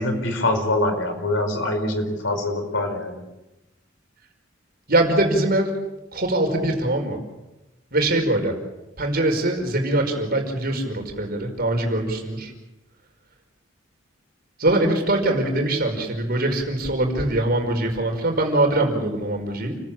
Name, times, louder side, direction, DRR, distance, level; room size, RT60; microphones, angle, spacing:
voice 1, 0.0-3.2, left 1 dB, 65° left, 6 dB, 4.8 m, -24 dB
voice 2, 4.9-5.7 6.1-7.2 7.9-8.6 9.0-12.5 14.6-19.8, right 1 dB, 50° right, 4 dB, 5.1 m, -22 dB
29.5 x 15.0 x 8.7 m, 1.0 s
head